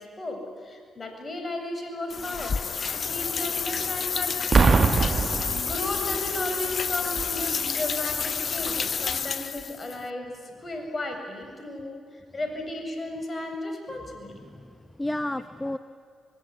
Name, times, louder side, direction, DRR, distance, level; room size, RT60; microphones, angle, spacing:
voice 1, 0.0-4.3 5.4-12.0 12.3-14.5, left 2 dB, 35° left, 4 dB, 7.8 m, -34 dB
sound 1, 2.1-10.0, left 6 dB, 55° left, 0.7 m, -29 dB
Boom, 4.5-6.3 7.2-7.4, right 4 dB, 45° right, 1.5 m, -22 dB
voice 2, 14.3-15.8, left 1 dB, 15° left, 12 dB, 1.1 m, -32 dB
26.5 x 22.5 x 9.8 m, 2.1 s
hypercardioid pair, 45°, 0 cm